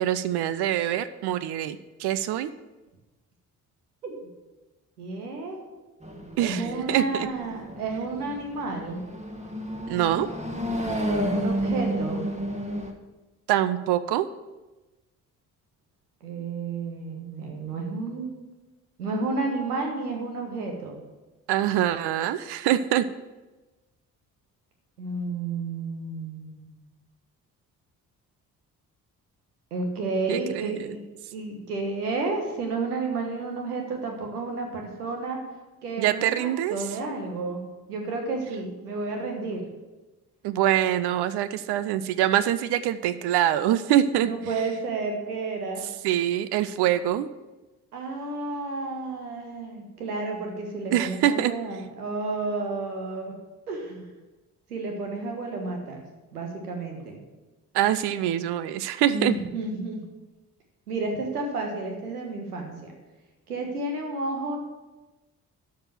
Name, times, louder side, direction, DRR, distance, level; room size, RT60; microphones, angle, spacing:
voice 1, 0.0-2.5 6.4-7.3 9.9-10.3 13.5-14.3 21.5-23.0 30.3-31.0 36.0-36.8 40.4-44.3 46.0-47.3 50.9-51.5 57.7-59.3, right 12 dB, 60° right, 14 dB, 0.7 m, -24 dB
voice 2, 5.0-5.6 6.4-9.0 11.2-12.3 16.2-18.4 19.0-21.0 25.0-26.7 29.7-31.0 31.3-35.4 35.8-37.6 37.9-39.7 44.2-45.8 47.9-53.4 53.7-54.1 54.7-56.0 56.3-57.2 59.1-60.1 60.9-62.9 63.5-64.6, right 3 dB, 85° right, 2 dB, 1.5 m, -31 dB
sound 1, 6.0-12.9, equal, 15° right, 1.6 m, -31 dB
12.5 x 4.8 x 7.4 m, 1.1 s
figure-of-eight pair, 45°, 45 cm